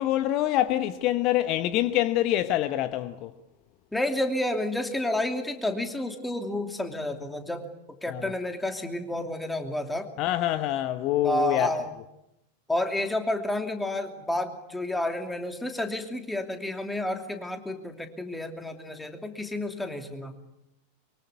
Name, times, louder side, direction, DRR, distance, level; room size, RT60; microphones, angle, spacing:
voice 1, 0.0-3.3 8.1-8.3 10.2-11.7, left 13 dB, 40° left, 1.0 m, -25 dB
voice 2, 3.9-7.7 8.0-10.1 11.2-11.9 12.7-20.3, left 1 dB, 5° left, 2.8 m, -30 dB
24.0 x 23.5 x 8.2 m
figure-of-eight pair, 90°, 0 cm